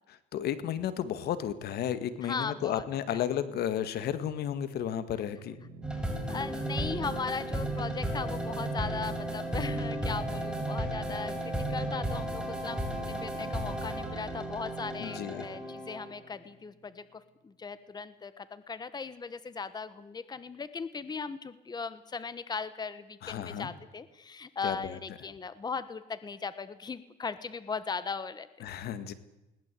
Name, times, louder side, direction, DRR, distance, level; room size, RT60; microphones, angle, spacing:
voice 1, 0.1-5.6 15.0-15.5 23.2-23.7 24.6-24.8 28.6-29.1, left 10 dB, 70° left, 12 dB, 1.9 m, -33 dB
voice 2, 2.2-3.3 6.3-28.5, left 5 dB, 25° left, 14 dB, 1.3 m, -38 dB
sound 1, 5.3-16.8, right 8 dB, 80° right, 2.4 m, -45 dB
sound 2, 5.8-16.2, equal, 5° right, 5.7 m, -34 dB
21.0 x 19.0 x 8.5 m, 0.96 s
cardioid pair, 110°, 17 cm